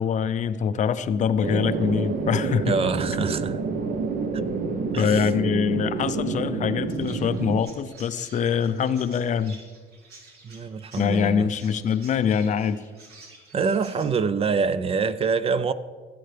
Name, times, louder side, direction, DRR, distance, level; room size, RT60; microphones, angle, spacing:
voice 1, 0.0-2.7 3.2-3.3 5.0-9.6 11.0-12.8, left 7 dB, 45° left, 0.5 m, -24 dB
sound 1, 1.4-7.6, right 4 dB, 55° right, 0.8 m, -28 dB
voice 2, 2.7-3.6 4.9-5.3 10.4-11.5 13.5-15.7, right 5 dB, 35° right, 0.4 m, -25 dB
Chirp tweet, 6.9-14.0, right 3 dB, 75° right, 2.5 m, -50 dB
16.0 x 7.9 x 3.3 m
cardioid pair, 110°, 17 cm